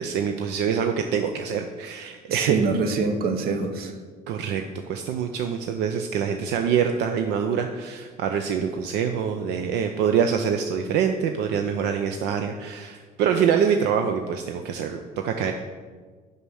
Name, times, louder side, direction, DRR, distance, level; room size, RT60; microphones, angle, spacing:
voice 1, 0.0-2.6 4.3-4.6 4.9-15.5, right 7 dB, 85° right, 5 dB, 0.6 m, -25 dB
voice 2, 2.3-3.9, right 4 dB, 65° right, 7 dB, 1.0 m, -25 dB
6.7 x 5.5 x 6.3 m, 1.5 s
cardioid pair, 110°, 17 cm